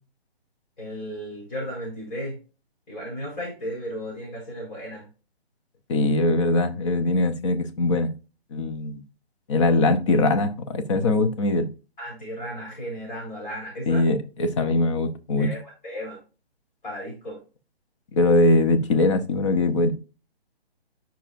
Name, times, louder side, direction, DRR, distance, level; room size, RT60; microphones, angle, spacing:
voice 1, 0.8-2.4 2.9-5.1 12.0-14.0 15.4-16.2 16.8-17.4, equal, 45° left, 4.3 m, -34 dB
voice 2, 5.9-8.1 8.5-9.0 9.5-11.7 13.9-15.5 18.1-19.9, left 2 dB, 30° left, 0.8 m, -21 dB
9.8 x 5.7 x 2.5 m
figure-of-eight pair, 145°, 32 cm